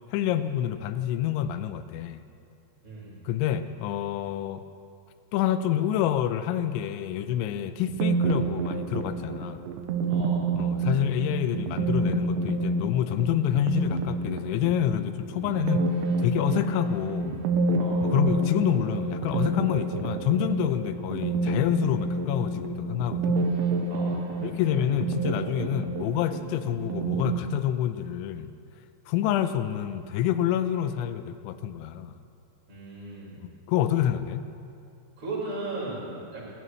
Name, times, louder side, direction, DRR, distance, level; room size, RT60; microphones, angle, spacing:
voice 1, 0.1-2.2 3.3-4.6 5.3-9.6 10.6-15.9 16.2-17.4 18.0-23.4 24.4-28.5 29.1-32.2 33.7-34.5, left 11 dB, 85° left, 10 dB, 3.0 m, -27 dB
voice 2, 2.8-3.1 7.7-7.8 10.1-10.4 17.7-18.0 23.9-24.2 32.7-33.4 35.2-36.5, right 2 dB, 25° right, -7 dB, 5.6 m, -36 dB
sound 1, 7.9-27.4, right 3 dB, 85° right, 3.2 m, -28 dB
24.5 x 17.0 x 3.2 m, 2.4 s
omnidirectional pair, 5.3 m